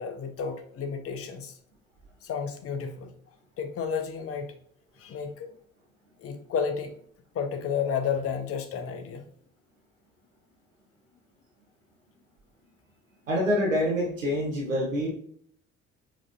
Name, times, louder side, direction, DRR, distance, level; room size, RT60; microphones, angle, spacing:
voice 1, 0.0-1.5 2.2-3.1 3.6-4.5 5.0-5.5 6.2-6.9 7.3-9.3, left 6 dB, 35° left, 7 dB, 0.7 m, -31 dB
voice 2, 13.3-15.1, equal, 85° right, -1 dB, 0.7 m, -26 dB
5.0 x 2.9 x 2.5 m, 0.63 s
figure-of-eight pair, 45°, 38 cm